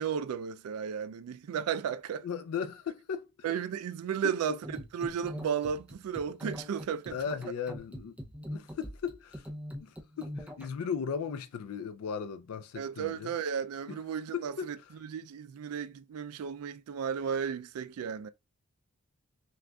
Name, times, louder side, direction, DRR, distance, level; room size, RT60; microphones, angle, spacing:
voice 1, 0.0-2.3 3.4-7.2 12.8-14.8 15.0-18.3, right 7 dB, 90° right, 0.3 m, -34 dB
voice 2, 2.2-3.5 4.2-4.6 7.1-8.1 8.5-9.5 9.8-13.3 14.3-14.7, left 6 dB, 85° left, 0.4 m, -37 dB
sound 1, 4.6-10.7, equal, 5° right, 0.5 m, -42 dB
6.0 x 2.4 x 2.2 m
head